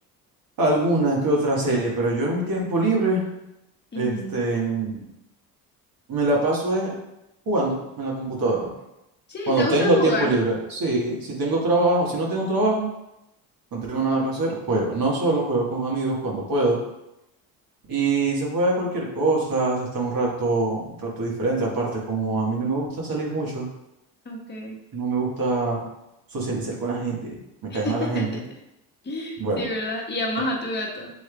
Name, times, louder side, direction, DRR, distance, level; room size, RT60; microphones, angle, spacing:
voice 1, 0.6-3.2 3.9-5.0 6.1-6.9 7.5-8.7 9.5-12.9 13.7-16.8 17.9-23.7 24.9-25.8 26.3-28.4 29.4-29.7, right 2 dB, 50° right, -2 dB, 1.6 m, -24 dB
voice 2, 3.9-4.3 9.3-10.3 24.2-24.8 27.7-28.4 29.0-31.1, left 2 dB, 25° left, -2 dB, 1.3 m, -29 dB
7.1 x 3.2 x 2.3 m, 0.89 s
hypercardioid pair, 55°, 46 cm